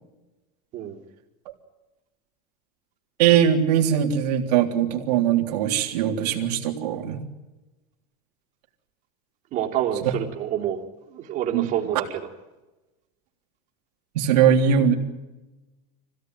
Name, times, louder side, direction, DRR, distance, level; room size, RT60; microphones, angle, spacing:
voice 1, 3.2-7.2 10.0-10.1 11.5-11.7 14.1-14.9, right 8 dB, 85° right, 2 dB, 3.6 m, -21 dB
voice 2, 9.5-10.8 11.1-12.2, right 10 dB, 40° right, 1 dB, 3.3 m, -27 dB
25.0 x 17.0 x 9.4 m, 1.1 s
supercardioid pair, 165°, 20 cm